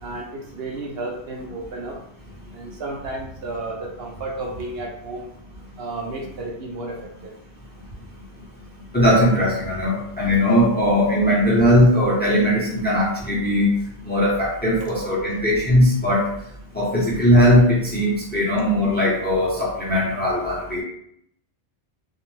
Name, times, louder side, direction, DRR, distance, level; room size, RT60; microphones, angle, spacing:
voice 1, 0.0-2.0 2.5-5.3 5.8-7.3 18.6-18.7, right 2 dB, 70° right, 0 dB, 0.8 m, -32 dB
voice 2, 8.9-13.7 14.0-16.3 16.7-20.8, equal, 10° left, -5 dB, 0.5 m, -19 dB
2.5 x 2.2 x 3.1 m, 0.71 s
omnidirectional pair, 1.1 m